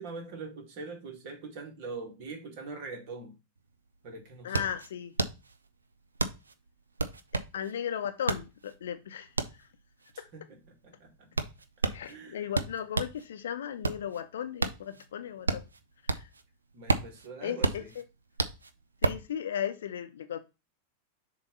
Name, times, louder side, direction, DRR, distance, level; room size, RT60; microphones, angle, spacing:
voice 1, 0.0-3.3 4.0-4.7 10.3-11.3 11.8-12.5 16.7-17.9, right 4 dB, 45° right, 2.2 m, -43 dB
sound 1, 3.6-3.7 3.9-13.2 13.6-16.4 16.7-19.3, right 3 dB, 75° right, 0.5 m, -32 dB
voice 2, 4.4-5.1 7.3-9.3 9.6-9.7 10.2-10.3 11.9-15.6 16.1-16.3 17.4-18.0 19.0-20.4, left 9 dB, 60° left, 0.8 m, -36 dB
7.0 x 3.0 x 5.3 m
figure-of-eight pair, 90°, 0 cm